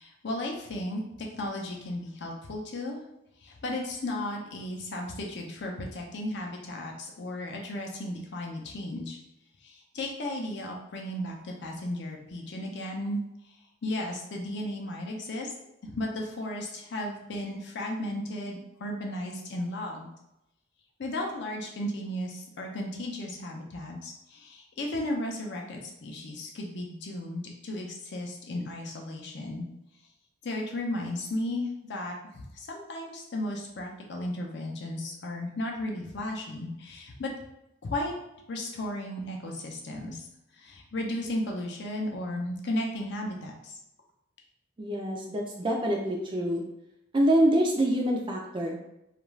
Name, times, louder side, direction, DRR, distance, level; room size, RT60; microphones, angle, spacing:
voice 1, 0.0-3.0 3.4-9.2 9.6-13.2 13.8-15.5 15.8-20.1 21.0-29.7 30.4-37.3 37.8-38.1 38.5-40.2 40.6-43.8, left 1 dB, 55° left, 0 dB, 0.5 m, -35 dB
voice 2, 44.8-46.6 47.1-48.8, right 1 dB, 25° right, 0 dB, 0.3 m, -25 dB
2.4 x 2.3 x 3.1 m, 0.86 s
head